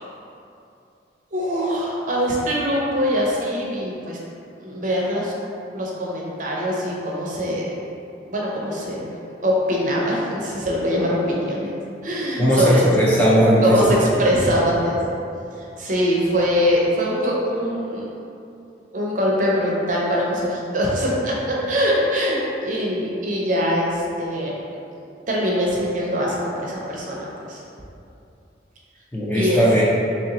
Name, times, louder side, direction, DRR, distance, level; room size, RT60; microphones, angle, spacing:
voice 1, 1.3-4.2 4.6-5.3 5.7-7.7 8.2-9.1 9.4-11.7 12.0-12.8 13.6-15.0 15.8-18.1 18.9-24.6 24.9-27.6 29.3-29.6, equal, 45° right, -4 dB, 0.6 m, -23 dB
voice 2, 12.4-13.8 29.1-29.8, equal, 10° left, -7 dB, 0.5 m, -17 dB
3.1 x 2.8 x 4.0 m, 2.6 s
head